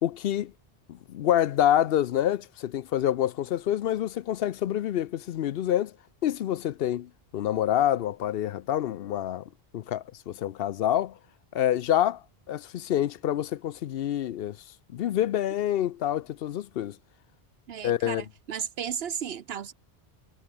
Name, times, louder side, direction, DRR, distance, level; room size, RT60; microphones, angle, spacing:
voice 1, 0.0-0.5 0.9-5.9 6.2-9.4 9.7-11.2 11.5-12.2 12.5-14.6 14.9-17.0 17.8-18.3, left 11 dB, 70° left, 0.8 m, -27 dB
voice 2, 17.7-19.7, right 8 dB, 75° right, 1.0 m, -34 dB
omnidirectional pair, 1.0 m